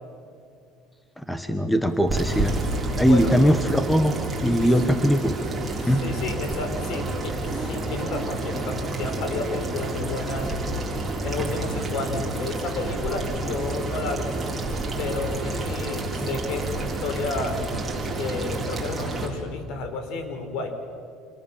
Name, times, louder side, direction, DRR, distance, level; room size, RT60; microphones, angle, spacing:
voice 1, 1.3-2.6 3.0-4.2 4.4-5.4 5.9-6.0, equal, 5° left, 8 dB, 1.2 m, -20 dB
sound 1, 1.8-19.3, right 2 dB, 10° right, 4.7 m, -29 dB
voice 2, 3.0-3.3 4.6-4.8 5.7-10.5 11.2-14.4 15.0-17.6 18.1-20.7, left 3 dB, 60° left, 7 dB, 4.6 m, -32 dB
29.0 x 27.5 x 7.4 m, 2.3 s
cardioid pair, 145°, 0 cm